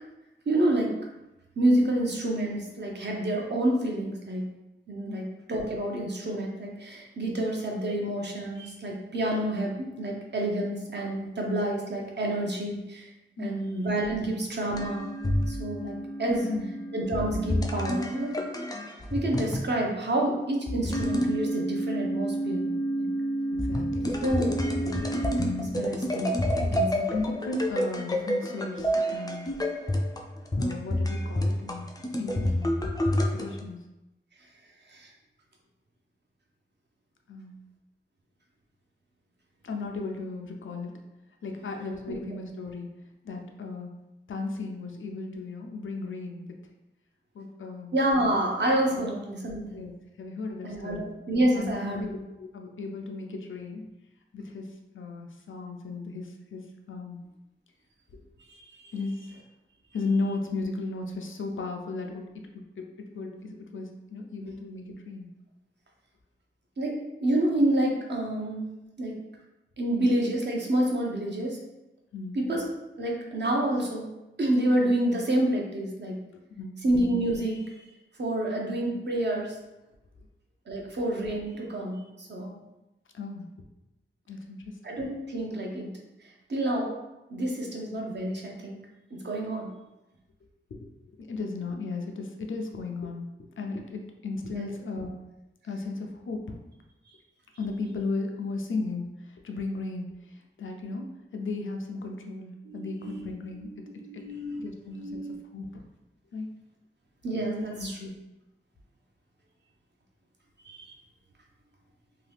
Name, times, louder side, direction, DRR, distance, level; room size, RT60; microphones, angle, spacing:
voice 1, 0.5-0.9 1.6-4.4 4.9-13.1 13.4-15.1 15.5-16.4 16.9-18.3 19.1-22.7 23.0-23.1 24.2-24.9 25.6-27.1 34.9-35.1 42.1-42.2 47.9-49.8 50.6-52.1 58.5-58.8 66.8-67.0 67.2-68.7 69.0-69.1 69.8-71.6 72.3-72.6 73.0-74.1 74.4-76.1 76.8-77.6 78.2-79.6 80.7-82.6 84.8-85.9 86.5-86.9 87.3-88.8 89.1-89.7 93.9-94.0 94.5-94.7 102.6-103.3 103.6-104.6 104.9-105.4 107.2-108.0 110.6-110.9, right 1 dB, 60° right, -1 dB, 0.6 m, -28 dB
sound 1, 14.8-19.7 20.7-33.6, equal, 20° left, 0.3 m, -29 dB
voice 2, 16.2-16.7 23.5-24.2 27.1-29.4 30.6-31.9 32.2-32.8 33.3-33.8 37.3-37.6 39.6-40.9 41.4-42.9 43.2-43.9 44.3-46.5 47.3-47.9 48.9-49.1 49.7-49.9 50.2-51.1 51.5-53.9 54.3-57.2 58.1-58.2 58.9-59.4 59.9-65.3 72.1-72.4 76.5-76.8 83.1-83.5 84.3-84.8 90.7-90.8 91.2-93.3 93.6-95.2 95.6-96.6 97.6-101.0 101.3-103.7 104.1-104.2 104.6-105.2 105.5-105.8 106.3-106.5 107.5-108.1, left 3 dB, 85° left, 3 dB, 0.4 m, -35 dB
2.8 x 2.3 x 3.3 m, 0.98 s
wide cardioid pair, 80°, 20 cm